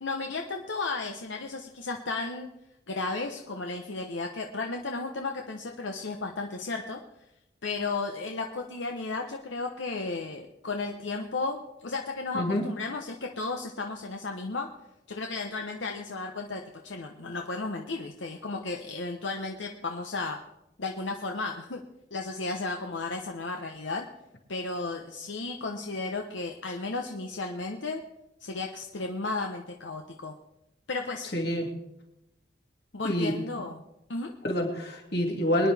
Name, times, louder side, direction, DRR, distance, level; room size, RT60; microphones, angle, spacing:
voice 1, 0.0-2.5 2.9-7.0 7.6-14.7 15.1-20.4 20.8-21.8 22.1-24.1 24.5-28.0 28.4-30.3 30.9-31.3 32.9-33.8 34.1-34.3, left 3 dB, 80° left, 3 dB, 1.0 m, -34 dB
voice 2, 31.3-31.7 33.0-33.3 34.4-35.7, equal, 55° left, 1 dB, 2.6 m, -27 dB
23.5 x 10.0 x 3.5 m, 0.88 s
head